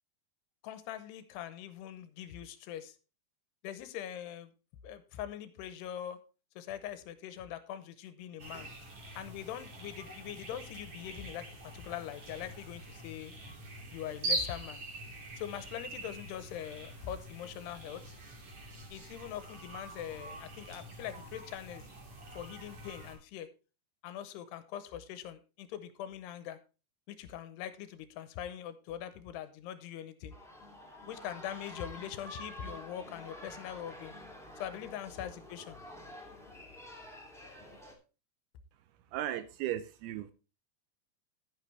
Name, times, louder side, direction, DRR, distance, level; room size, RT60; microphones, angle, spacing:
voice 1, 0.6-3.0 3.6-4.5 4.8-6.2 6.6-8.7 9.2-13.3 13.9-14.8 15.4-18.1 18.9-21.8 22.3-23.5 24.0-26.6 27.1-30.3 31.1-34.2 34.6-35.8, left 10 dB, 80° left, 12 dB, 2.8 m, -42 dB
sound 1, 8.4-23.2, right 1 dB, 40° right, 3.3 m, -43 dB
sound 2, 30.3-37.9, left 1 dB, ahead, 1.2 m, -49 dB
voice 2, 39.1-40.3, right 12 dB, 80° right, 13 dB, 2.4 m, -36 dB
11.5 x 9.4 x 3.3 m, 0.32 s
omnidirectional pair, 5.0 m